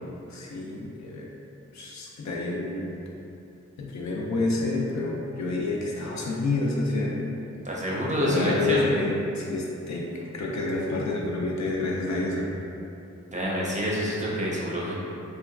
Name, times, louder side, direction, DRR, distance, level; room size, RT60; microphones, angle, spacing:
voice 1, 0.3-1.3 1.7-2.9 3.8-7.1 8.3-10.0 10.3-12.5, left 2 dB, 70° left, -3 dB, 0.5 m, -28 dB
voice 2, 7.6-8.9 13.3-14.9, equal, 25° right, -5 dB, 0.5 m, -27 dB
2.9 x 2.3 x 2.3 m, 2.7 s
wide cardioid pair, 85°, 29 cm